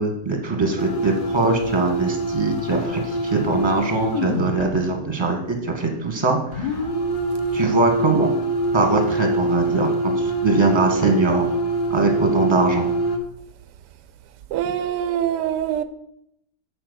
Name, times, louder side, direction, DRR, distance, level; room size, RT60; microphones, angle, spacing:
voice 1, 0.0-6.8 7.5-8.3 8.7-11.5 11.9-12.9, right 3 dB, 20° right, 1.3 m, -22 dB
sound 1, 0.8-4.6 6.5-13.2, right 1 dB, 35° left, 1.2 m, -24 dB
voice 2, 14.5-15.8, right 10 dB, 90° right, 1.2 m, -24 dB
7.1 x 4.7 x 6.7 m
omnidirectional pair, 1.8 m